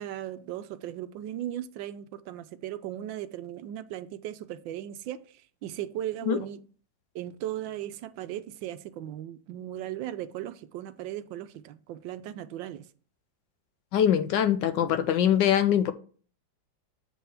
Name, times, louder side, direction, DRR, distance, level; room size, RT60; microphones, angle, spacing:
voice 1, 0.0-5.2 5.6-6.6 7.1-12.9, right 12 dB, 80° right, 1.3 m, -37 dB
voice 2, 13.9-15.9, left 9 dB, 75° left, 1.2 m, -23 dB
7.5 x 3.5 x 5.7 m
omnidirectional pair, 2.1 m